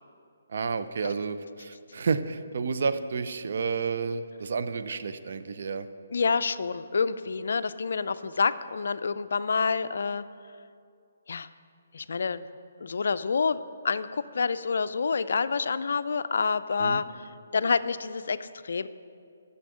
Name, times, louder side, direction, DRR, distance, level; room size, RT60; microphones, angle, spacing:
voice 1, 0.5-5.9 16.8-17.0, right 5 dB, 60° right, 11 dB, 0.5 m, -30 dB
voice 2, 6.1-10.2 11.3-11.5 11.9-12.4 12.8-18.9, left 5 dB, 70° left, 14 dB, 0.3 m, -28 dB
8.3 x 7.1 x 6.2 m, 2.5 s
hypercardioid pair, 150°, 0 cm